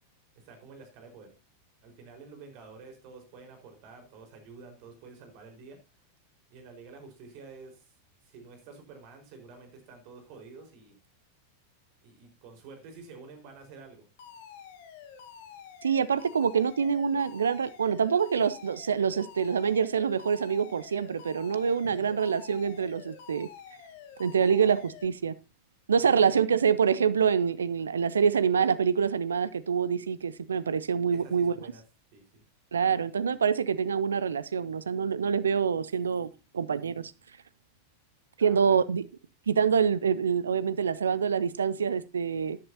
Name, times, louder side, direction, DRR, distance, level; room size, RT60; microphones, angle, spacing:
voice 1, 0.4-1.3 1.8-5.8 6.5-7.9 8.2-11.0 12.0-14.0 26.0-26.4 31.1-31.8 32.1-32.4 38.4-38.8, right 4 dB, 45° right, 4.5 m, -49 dB
Alarm, 14.2-25.0, left 8 dB, 50° left, 1.9 m, -48 dB
voice 2, 15.8-23.5 24.2-25.3 25.9-31.7 32.7-36.3 36.5-37.1 38.4-39.0 39.5-42.6, right 6 dB, 70° right, 0.7 m, -26 dB
14.0 x 11.0 x 2.8 m
figure-of-eight pair, 90°, 0 cm